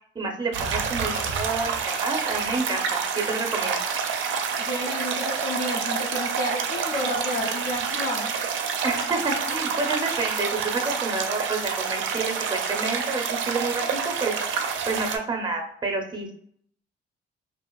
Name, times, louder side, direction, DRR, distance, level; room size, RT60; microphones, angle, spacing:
voice 1, 0.1-3.8 8.8-14.3 14.6-16.3, right 3 dB, 20° right, 3 dB, 0.6 m, -29 dB
sound 1, 0.5-15.2, right 6 dB, 75° right, 0.4 m, -28 dB
voice 2, 4.6-8.3, left 1 dB, 55° left, -3 dB, 0.5 m, -31 dB
2.5 x 2.4 x 2.2 m, 0.64 s
cardioid pair, 90°, 20 cm